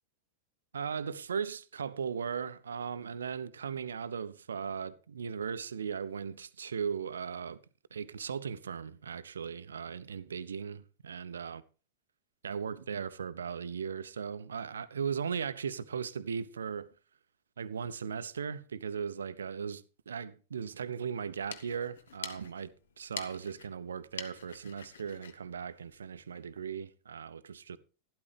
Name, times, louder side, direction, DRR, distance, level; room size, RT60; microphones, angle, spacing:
voice 1, 0.7-7.6 7.9-11.6 12.4-16.9 17.6-22.7 23.0-27.8, right 6 dB, 70° right, 0.5 m, -37 dB
sound 1, 21.2-26.5, left 7 dB, 65° left, 0.9 m, -47 dB
12.0 x 12.0 x 3.4 m
figure-of-eight pair, 90°, 0 cm